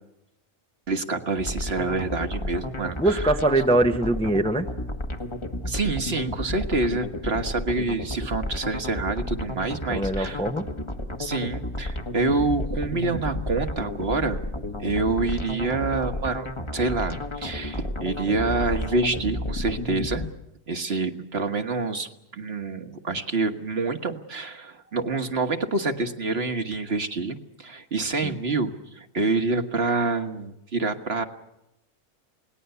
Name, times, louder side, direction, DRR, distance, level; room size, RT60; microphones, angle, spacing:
voice 1, 0.9-3.2 5.6-10.4 11.2-14.4 14.8-16.5 16.7-20.2 20.7-31.2, right 3 dB, 50° right, 6 dB, 1.7 m, -27 dB
sound 1, 1.4-20.3, left 1 dB, 20° left, 1.4 m, -32 dB
voice 2, 3.0-4.7 9.9-10.7 28.2-28.4, right 1 dB, 5° left, 6 dB, 0.8 m, -22 dB
28.0 x 19.0 x 6.9 m, 0.84 s
omnidirectional pair, 1.4 m